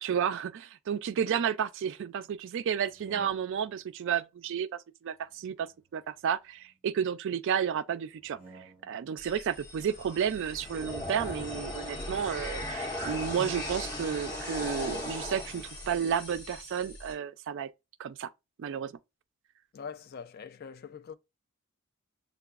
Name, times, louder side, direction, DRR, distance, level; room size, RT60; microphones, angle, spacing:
voice 1, 0.0-8.4 8.8-17.7 18.0-18.3 18.6-18.9, right 8 dB, 55° right, 0.3 m, -32 dB
sound 1, 2.8-3.9 5.2-6.8 8.1-9.1, right 3 dB, 25° right, 1.5 m, -56 dB
sound 2, 9.2-17.1, left 1 dB, 20° left, 1.6 m, -38 dB
voice 2, 19.7-21.1, left 6 dB, 45° left, 0.4 m, -43 dB
6.5 x 2.3 x 2.3 m
head